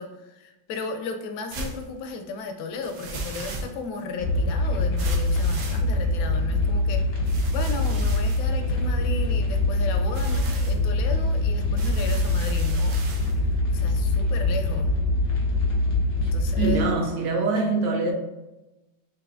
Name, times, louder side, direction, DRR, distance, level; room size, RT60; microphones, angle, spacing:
voice 1, 0.0-7.1 7.5-13.0 13.7-14.9 16.1-16.9, left 4 dB, 80° left, 1.3 m, -35 dB
sound 1, 1.5-1.9 2.8-4.0 5.0-6.2 7.2-9.3 10.0-10.8 11.8-13.4, right 3 dB, 90° right, 0.6 m, -37 dB
sound 2, 4.2-16.8, left 2 dB, 60° left, 0.6 m, -24 dB
voice 2, 16.6-18.1, right 3 dB, 70° right, 1.2 m, -24 dB
5.5 x 2.6 x 2.5 m
omnidirectional pair, 2.1 m